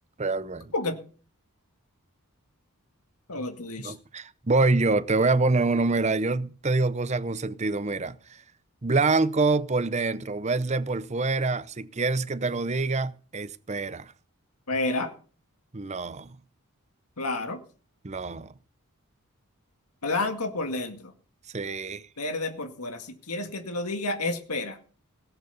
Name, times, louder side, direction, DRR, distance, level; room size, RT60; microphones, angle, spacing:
voice 1, 0.2-0.7 3.8-8.4 8.8-14.1 15.7-16.4 18.0-18.5 21.5-22.1, right 3 dB, 30° right, 0.7 m, -26 dB
voice 2, 3.3-3.9 14.7-15.1 17.2-17.6 20.0-21.1 22.2-24.8, left 2 dB, 90° left, 2.0 m, -30 dB
18.0 x 8.1 x 6.9 m
head